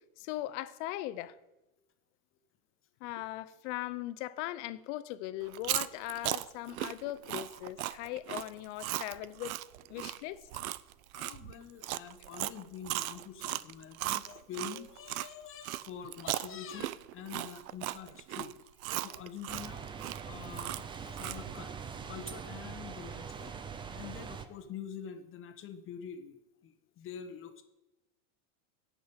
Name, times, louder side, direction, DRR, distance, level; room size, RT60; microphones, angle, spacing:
voice 1, 0.2-1.4 3.0-9.5 9.9-10.5, left 15 dB, 55° left, 0.8 m, -39 dB
Chewing mastication, 5.5-15.3 15.6-21.6, right 15 dB, 90° right, 0.6 m, -37 dB
voice 2, 11.1-18.5 18.9-23.5 23.9-26.4 26.6-27.6, left 7 dB, 30° left, 1.2 m, -46 dB
sound 1, 19.5-24.5, right 6 dB, 10° right, 0.4 m, -43 dB
9.4 x 6.2 x 8.5 m
supercardioid pair, 135°, 41 cm